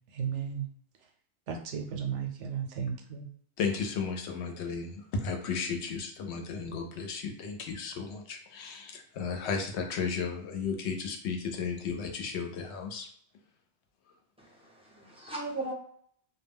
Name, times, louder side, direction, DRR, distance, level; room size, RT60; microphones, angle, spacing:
voice 1, 0.1-0.7 1.5-3.3, right 7 dB, 85° right, 3 dB, 0.9 m, -34 dB
voice 2, 3.6-13.1, left 5 dB, 75° left, 4 dB, 0.8 m, -34 dB
voice 3, 14.4-15.7, right 2 dB, 5° right, -3 dB, 0.5 m, -38 dB
2.2 x 2.2 x 3.4 m, 0.62 s
omnidirectional pair, 1.2 m